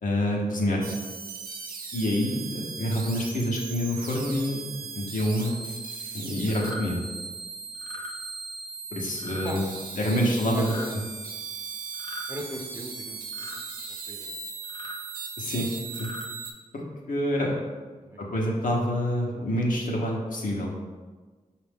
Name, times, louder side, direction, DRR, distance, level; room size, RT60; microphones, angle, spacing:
voice 1, 0.0-0.8 1.9-4.6 4.9-5.6 6.1-7.0 8.9-9.6 10.0-10.7 15.4-16.1 16.7-16.8 17.1-17.6 18.2-20.7, equal, 60° left, -2 dB, 0.9 m, -27 dB
sound 1, 0.8-16.5, right 5 dB, 75° right, 0.5 m, -38 dB
sound 2, 6.5-6.8 7.7-8.1 9.2-9.5 10.5-10.9 11.9-12.3 13.3-13.6 14.6-15.0 15.8-16.3, left 1 dB, 30° left, 0.9 m, -40 dB
voice 2, 9.9-11.0 12.3-14.4 18.0-18.4, equal, 15° right, 1 dB, 0.8 m, -40 dB
4.7 x 2.5 x 3.5 m, 1.4 s
cardioid pair, 40°, 15 cm